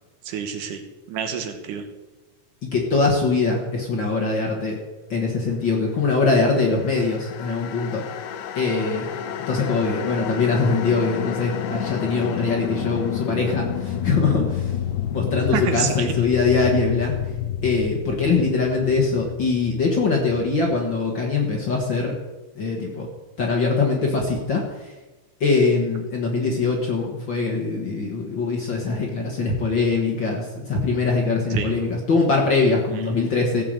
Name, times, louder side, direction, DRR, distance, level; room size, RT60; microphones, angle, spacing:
voice 1, 0.2-0.8 1.1-1.8 15.5-16.1 31.5-31.7 32.9-33.0, right 8 dB, 75° right, 6 dB, 2.6 m, -28 dB
voice 2, 2.7-4.8 5.1-8.0 8.6-9.1 9.5-14.7 15.1-17.1 17.6-22.1 22.6-23.1 23.4-24.9 25.4-33.6, left 4 dB, 45° left, 0 dB, 1.7 m, -22 dB
sound 1, 6.4-21.6, left 9 dB, 75° left, 2.1 m, -30 dB
15.5 x 5.8 x 7.6 m, 1.1 s
omnidirectional pair, 3.7 m